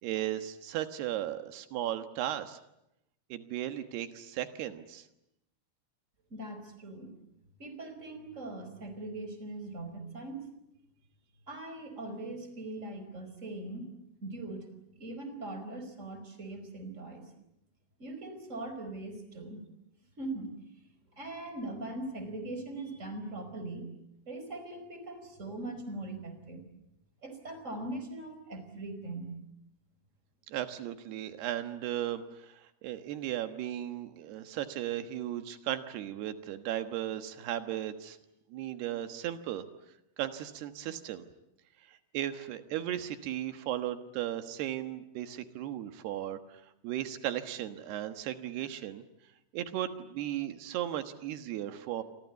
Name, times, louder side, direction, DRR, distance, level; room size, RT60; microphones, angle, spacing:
voice 1, 0.0-2.6 3.3-5.0 30.5-38.2 38.5-39.6 40.2-41.2 42.1-49.0 49.5-52.0, right 12 dB, 85° right, 9 dB, 3.4 m, -36 dB
voice 2, 6.3-7.1 7.6-10.5 11.5-13.9 14.2-14.6 15.0-17.3 18.0-19.6 20.2-20.5 21.2-23.9 24.3-26.6 27.2-29.3, right 2 dB, 20° right, 8 dB, 4.9 m, -41 dB
29.0 x 24.5 x 8.3 m, 0.83 s
omnidirectional pair, 4.5 m